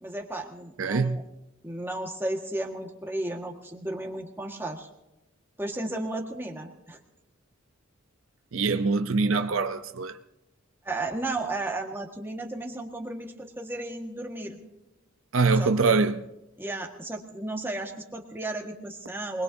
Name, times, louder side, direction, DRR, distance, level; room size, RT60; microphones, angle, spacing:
voice 1, 0.0-1.2 1.6-4.9 5.6-7.0 10.8-14.6 15.6-16.0 16.6-19.4, right 2 dB, 10° right, 1.6 m, -34 dB
voice 2, 0.8-1.2 8.5-10.2 15.3-16.2, right 4 dB, 70° right, 0.6 m, -24 dB
24.5 x 20.5 x 2.7 m
head